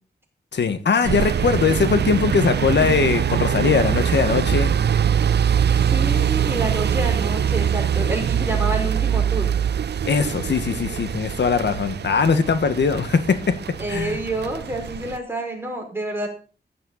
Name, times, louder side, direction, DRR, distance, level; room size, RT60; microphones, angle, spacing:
voice 1, 0.5-4.7 10.0-13.5 13.9-14.2, left 5 dB, 85° left, 9 dB, 1.7 m, -20 dB
sound 1, 1.0-15.2, right 8 dB, 75° right, 0.5 m, -23 dB
voice 2, 5.9-9.5 13.8-16.3, right 1 dB, 15° right, 1 dB, 5.4 m, -28 dB
15.5 x 10.5 x 4.2 m, 0.38 s
wide cardioid pair, 160°, 18 cm